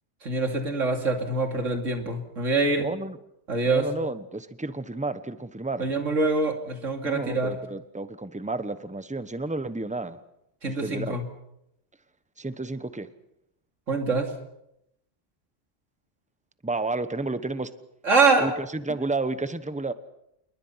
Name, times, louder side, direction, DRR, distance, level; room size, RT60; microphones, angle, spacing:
voice 1, 0.2-2.9 3.5-3.9 5.8-7.5 10.6-11.2 13.9-14.3 18.0-18.5, right 3 dB, 85° right, 4 dB, 3.1 m, -24 dB
voice 2, 2.8-3.2 3.6-5.9 7.0-10.2 10.6-11.2 12.4-13.1 16.6-17.7 18.4-19.9, right 3 dB, 5° right, 12 dB, 1.0 m, -31 dB
28.5 x 21.5 x 5.8 m, 0.79 s
omnidirectional pair, 1.3 m